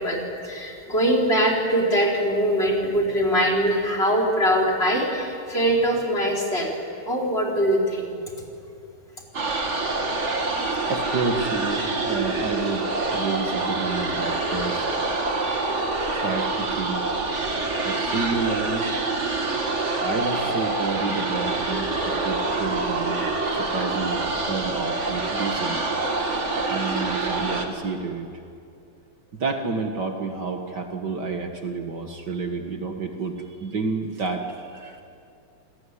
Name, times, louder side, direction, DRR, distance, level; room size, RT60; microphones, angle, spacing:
voice 1, 0.0-6.7 7.1-8.1, equal, 25° left, 0 dB, 4.7 m, -22 dB
sound 1, 9.3-27.7, right 3 dB, 35° right, 2.3 m, -26 dB
voice 2, 10.9-14.9 16.1-17.1 17.8-18.9 20.0-23.3 23.5-25.8 26.2-26.3 26.7-28.3 29.3-35.0, right 4 dB, 55° right, 4 dB, 2.2 m, -29 dB
29.0 x 19.5 x 9.9 m, 2.5 s
omnidirectional pair, 2.4 m